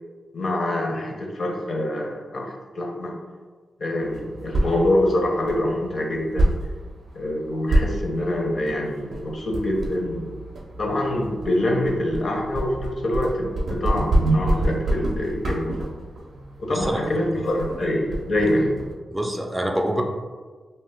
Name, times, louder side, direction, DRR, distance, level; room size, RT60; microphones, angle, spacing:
voice 1, 0.3-3.2 3.8-6.6 7.1-10.3 10.8-15.9 16.6-18.8, left 1 dB, 60° left, 1 dB, 0.5 m, -25 dB
sound 1, 4.0-18.9, right 1 dB, 70° right, 0.5 m, -28 dB
voice 2, 16.7-17.1 19.1-20.0, right 1 dB, 15° right, 2 dB, 0.3 m, -25 dB
2.6 x 2.1 x 3.3 m, 1.4 s
cardioid pair, 70°, 0 cm